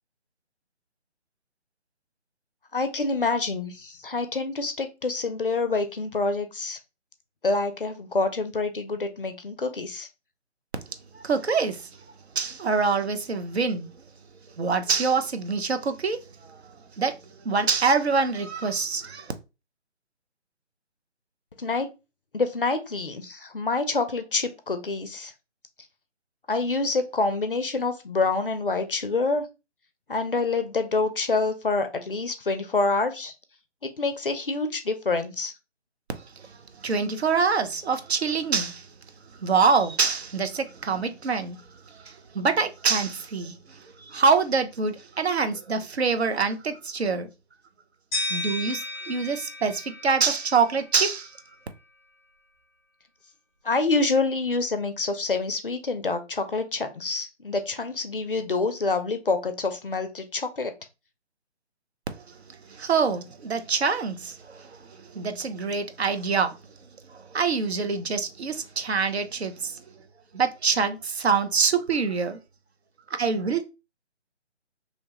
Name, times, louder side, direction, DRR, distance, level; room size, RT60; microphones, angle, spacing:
voice 1, 2.7-6.8 7.4-10.1 21.6-21.9 22.3-25.3 26.5-29.4 30.1-33.3 34.0-35.5 53.6-60.7, left 3 dB, 50° left, 0.4 m, -27 dB
voice 2, 11.1-11.9 12.4-13.9 14.6-16.6 17.0-17.1 17.4-19.3 36.4-36.5 36.8-38.9 39.4-41.6 42.0-47.3 48.3-51.3 62.7-66.6 67.1-69.8 70.3-72.4 73.2-73.6, right 5 dB, 60° right, 0.6 m, -25 dB
sound 1, 48.1-51.0, left 1 dB, 10° left, 0.9 m, -34 dB
2.8 x 2.1 x 2.8 m
figure-of-eight pair, 150°, 36 cm